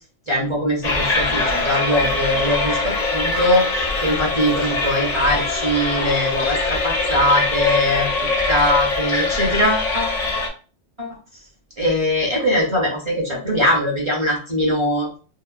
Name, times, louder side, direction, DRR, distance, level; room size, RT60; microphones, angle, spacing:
voice 1, 0.3-8.1 8.5-10.2 11.0-11.2 11.8-15.1, left 1 dB, 30° right, -3 dB, 0.6 m, -21 dB
sound 1, 0.8-10.5, left 3 dB, 55° left, 0.4 m, -22 dB
2.6 x 2.1 x 2.4 m, 0.37 s
omnidirectional pair, 1.3 m